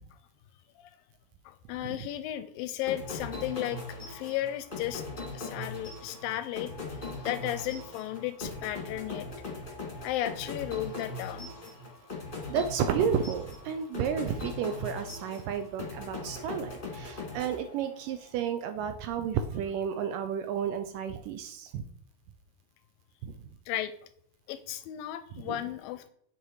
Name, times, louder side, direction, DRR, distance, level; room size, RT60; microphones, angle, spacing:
voice 1, 1.5-6.9 7.2-9.3 10.0-11.5 16.3-16.4 23.7-23.9 24.5-26.1, left 13 dB, 80° left, 11 dB, 2.2 m, -35 dB
sound 1, 2.9-18.2, left 3 dB, 20° left, 1.5 m, -40 dB
voice 2, 12.5-21.8 23.2-23.3 25.5-25.6, right 8 dB, 80° right, 8 dB, 2.1 m, -32 dB
8.2 x 7.1 x 4.7 m, 0.67 s
omnidirectional pair, 4.3 m